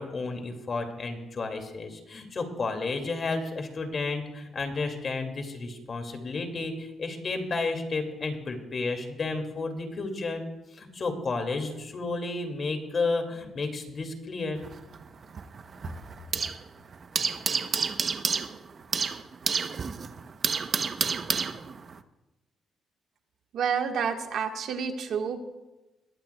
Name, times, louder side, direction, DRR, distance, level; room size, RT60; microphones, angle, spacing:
voice 1, 0.0-10.4 10.7-14.6, left 3 dB, 40° left, 5 dB, 2.3 m, -32 dB
sound 1, 14.6-16.7 16.9-22.0, right 5 dB, 45° right, 0.8 m, -30 dB
voice 2, 23.5-25.4, right 6 dB, 70° right, 4 dB, 1.4 m, -29 dB
21.0 x 14.5 x 2.3 m, 1.1 s
cardioid pair, 90°, 0 cm